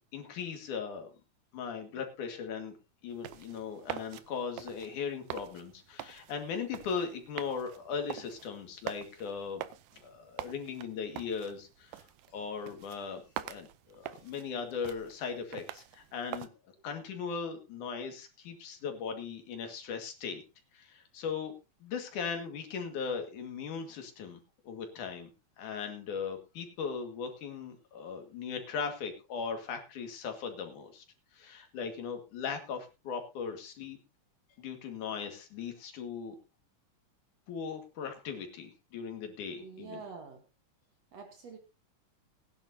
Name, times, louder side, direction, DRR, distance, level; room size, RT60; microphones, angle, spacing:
voice 1, 0.1-1.1 1.5-2.8 3.0-9.6 9.9-12.0 12.3-16.5 16.8-20.4 20.7-21.5 21.8-24.4 24.7-25.3 25.6-31.0 31.3-34.0 34.6-36.4 37.5-40.0, left 6 dB, 75° left, 4 dB, 3.5 m, -38 dB
sound 1, 3.1-16.5, right 13 dB, 85° right, 2.3 m, -45 dB
voice 2, 39.6-40.4 41.1-41.6, right 4 dB, 60° right, 4 dB, 2.4 m, -46 dB
19.5 x 10.5 x 2.8 m, 0.28 s
omnidirectional pair, 3.6 m